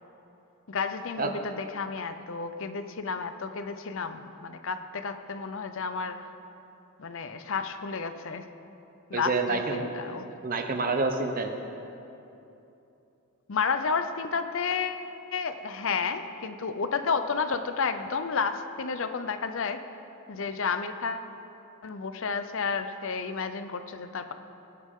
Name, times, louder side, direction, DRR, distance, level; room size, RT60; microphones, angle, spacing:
voice 1, 0.7-6.2 7.0-8.5 9.1-10.3 13.5-15.1 15.3-19.8 20.3-21.3 21.8-24.3, left 5 dB, 60° left, 9 dB, 0.6 m, -31 dB
voice 2, 9.1-9.9 10.4-11.5, right 3 dB, 40° right, 5 dB, 0.9 m, -28 dB
19.0 x 10.5 x 3.7 m, 2.9 s
head